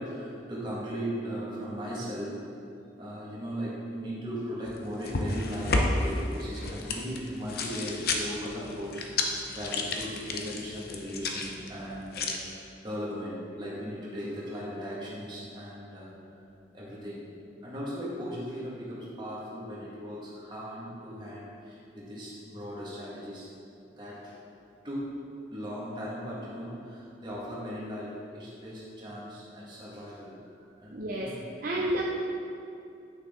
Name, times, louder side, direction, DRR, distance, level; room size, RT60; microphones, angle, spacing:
voice 1, 0.0-2.4 3.0-9.3 9.5-16.1 16.7-17.3 17.6-23.5 24.0-24.4 24.8-25.2 25.5-30.4 30.8-31.4 31.7-32.0, equal, 25° right, -7 dB, 1.9 m, -38 dB
sound 1, 4.7-12.4, left 2 dB, 55° left, 0.7 m, -32 dB
voice 2, 30.9-31.3 31.6-32.0, right 1 dB, 50° right, -3 dB, 0.6 m, -30 dB
8.5 x 6.3 x 3.7 m, 2.6 s
head